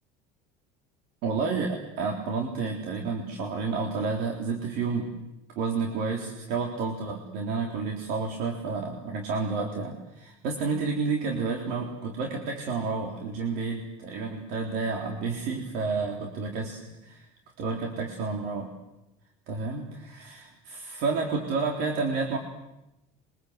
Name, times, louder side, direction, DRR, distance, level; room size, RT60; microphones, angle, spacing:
voice 1, 1.2-5.1 5.6-17.3 17.6-18.7 19.5-22.4, right 4 dB, 65° right, 1 dB, 3.9 m, -30 dB
27.5 x 24.5 x 8.2 m, 0.91 s
cardioid pair, 140°, 17 cm